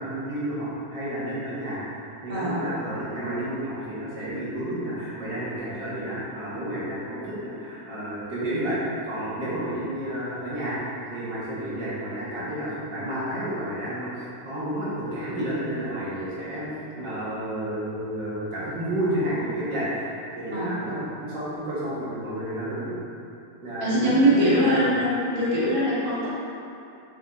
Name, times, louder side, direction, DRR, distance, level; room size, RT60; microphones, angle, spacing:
voice 1, 0.0-1.8 2.2-8.8 9.1-10.8 11.1-16.7 16.9-23.0 23.6-24.8, right 1 dB, 85° right, -10 dB, 2.3 m, -31 dB
voice 2, 2.3-2.6 20.5-20.7 23.8-26.3, equal, 20° right, -9 dB, 1.4 m, -22 dB
6.3 x 6.1 x 2.7 m, 2.6 s
omnidirectional pair, 1.9 m